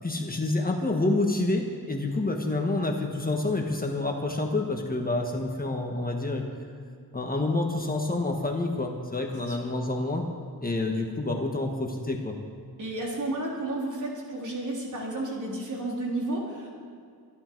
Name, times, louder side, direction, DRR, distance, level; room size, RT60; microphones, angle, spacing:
voice 1, 0.0-6.4 7.1-10.2 10.6-12.4, left 2 dB, 20° left, 2 dB, 1.4 m, -28 dB
voice 2, 12.8-16.8, right 2 dB, 50° right, -3 dB, 3.6 m, -32 dB
24.5 x 12.0 x 4.6 m, 2.2 s
wide cardioid pair, 145°, 39 cm